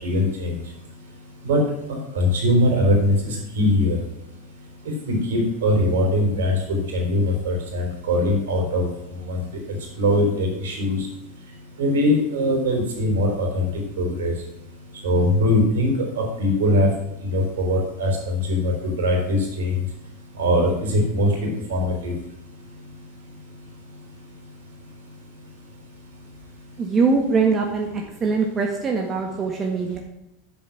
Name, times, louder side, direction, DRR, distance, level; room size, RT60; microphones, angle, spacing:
voice 1, 0.0-0.6 1.4-1.6 1.9-4.0 5.1-8.9 9.3-9.4 10.0-11.1 11.8-13.7 14.0-14.3 15.0-16.9 17.2-19.8 20.4-22.1, left 1 dB, 65° right, 1 dB, 4.0 m, -21 dB
voice 2, 26.8-30.0, right 4 dB, 30° right, 1 dB, 1.5 m, -22 dB
10.0 x 7.7 x 6.0 m, 0.88 s
figure-of-eight pair, 85°, 0 cm